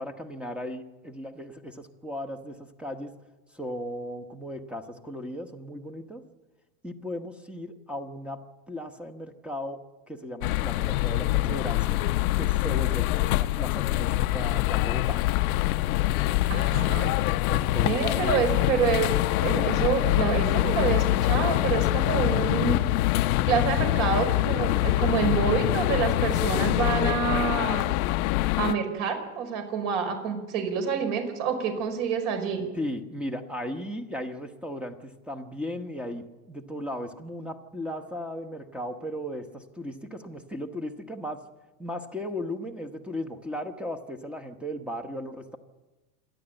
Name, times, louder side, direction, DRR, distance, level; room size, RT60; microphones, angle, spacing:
voice 1, 0.0-3.1 3.5-6.2 6.8-8.4 8.7-9.8 10.1-12.0 12.4-15.2 17.5-18.3 32.7-41.4 41.8-45.6, left 1 dB, ahead, 5 dB, 1.0 m, -36 dB
sound 1, 10.4-28.7, left 16 dB, 65° left, 0.8 m, -24 dB
voice 2, 16.5-17.1 17.8-19.1 19.4-22.8 23.5-27.9 28.6-32.7, right 7 dB, 55° right, 6 dB, 5.1 m, -27 dB
27.5 x 11.0 x 9.0 m, 1.1 s
supercardioid pair, 145°, 46 cm